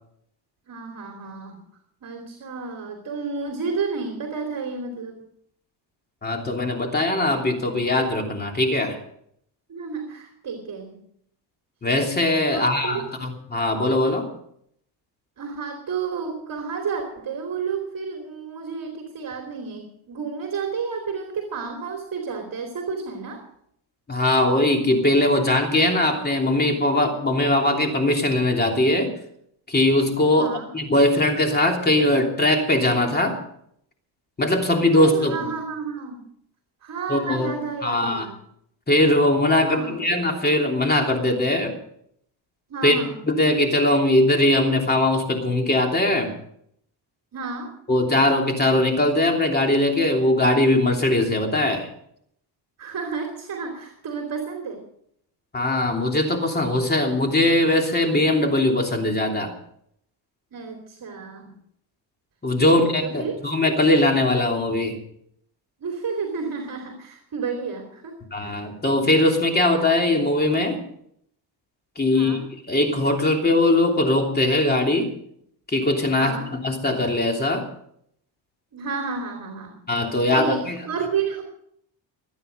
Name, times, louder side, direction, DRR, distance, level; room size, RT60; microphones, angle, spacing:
voice 1, 0.7-1.6 2.0-5.1 9.7-11.0 12.5-13.0 15.4-23.4 30.3-30.7 34.9-36.2 36.8-38.3 39.6-40.2 42.7-43.2 47.3-47.7 52.8-54.8 60.5-61.6 62.6-63.3 65.8-68.1 68.4-68.6 72.1-72.4 76.1-76.5 78.7-79.8 80.1-81.4, right 5 dB, 50° right, 3 dB, 3.0 m, -31 dB
voice 2, 6.2-9.0 11.8-14.3 24.1-29.1 29.7-30.5 30.7-33.4 34.4-35.3 37.1-37.5 37.8-38.3 38.9-41.7 42.8-43.0 43.2-46.3 47.9-51.9 55.5-59.5 62.4-65.0 68.3-70.8 72.0-72.4 72.7-75.1 75.7-76.3 76.6-77.7 79.9-80.7, left 1 dB, 20° left, 2 dB, 3.1 m, -20 dB
24.0 x 9.7 x 5.2 m, 0.70 s
cardioid pair, 120°, 44 cm